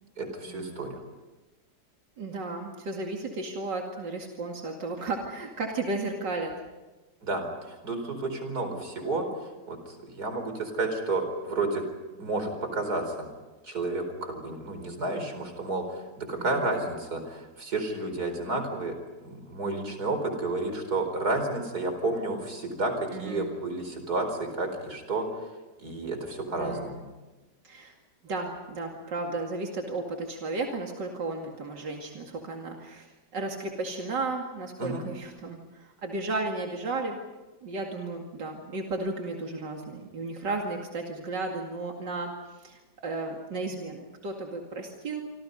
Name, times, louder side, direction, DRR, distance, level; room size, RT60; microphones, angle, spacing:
voice 1, 0.2-1.0 7.2-9.3 9.7-11.8 12.2-13.3 13.6-18.9 19.2-25.3 25.8-27.0 34.8-35.1, right 2 dB, 60° right, 6 dB, 5.0 m, -31 dB
voice 2, 2.2-6.5 16.4-16.7 23.1-23.5 26.5-27.0 27.6-27.9 28.2-37.2 37.6-42.3 42.6-45.2, right 3 dB, 90° right, 1 dB, 2.9 m, -34 dB
27.5 x 26.0 x 5.4 m, 1.1 s
omnidirectional pair, 1.9 m